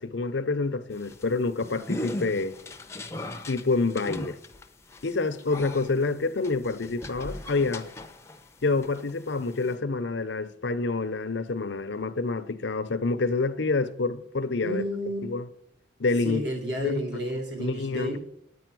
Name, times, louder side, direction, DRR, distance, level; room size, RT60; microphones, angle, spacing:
voice 1, 0.0-2.5 3.5-4.4 5.0-7.9 8.6-14.8 15.2-15.4 16.0-16.4 16.8-17.0 17.6-18.1, left 3 dB, 65° left, 0.7 m, -27 dB
sound 1, 0.9-8.5 8.8-9.8, left 1 dB, 15° left, 0.7 m, -38 dB
voice 2, 14.6-15.3 16.2-18.3, equal, 55° right, 2.8 m, -31 dB
9.7 x 9.3 x 6.1 m
head